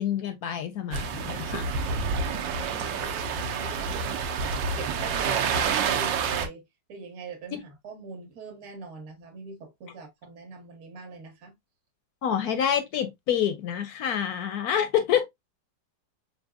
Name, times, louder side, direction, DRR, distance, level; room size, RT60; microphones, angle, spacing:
voice 1, 0.0-1.7 7.5-7.6 12.2-15.3, left 9 dB, 70° left, 1.0 m, -27 dB
sound 1, 0.9-6.5, right 5 dB, 80° right, 1.3 m, -28 dB
voice 2, 2.2-3.9 4.8-6.6 6.9-11.5, right 4 dB, 55° right, 1.5 m, -42 dB
5.3 x 2.7 x 2.3 m
omnidirectional pair, 2.0 m